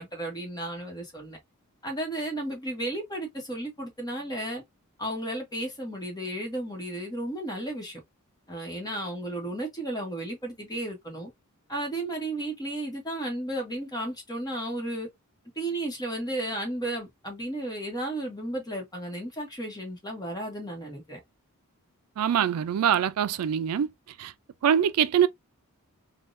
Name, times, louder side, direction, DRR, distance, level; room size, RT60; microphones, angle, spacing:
voice 1, 0.0-1.4 1.8-4.6 5.0-8.0 8.5-11.3 11.7-15.1 15.6-21.2, right 1 dB, 20° left, 1.2 m, -33 dB
voice 2, 22.2-23.9 24.2-24.3 24.6-25.3, right 9 dB, 80° right, 0.3 m, -23 dB
3.5 x 2.2 x 2.5 m
head